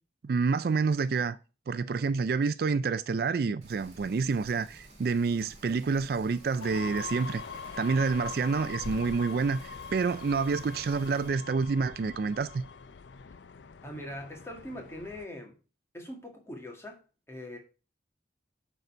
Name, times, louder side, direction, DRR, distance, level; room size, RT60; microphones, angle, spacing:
voice 1, 0.2-1.4 1.7-7.4 7.8-12.6, right 4 dB, 55° right, 0.3 m, -28 dB
Rain, 3.6-11.3, right 1 dB, 40° right, 2.6 m, -52 dB
Bowed string instrument, 6.3-11.4, left 5 dB, 30° left, 2.4 m, -54 dB
sound 1, 6.6-15.3, left 5 dB, 80° left, 0.5 m, -43 dB
voice 2, 13.8-15.5 15.9-17.0 17.3-17.6, left 1 dB, 15° left, 1.9 m, -41 dB
9.2 x 4.0 x 5.4 m
head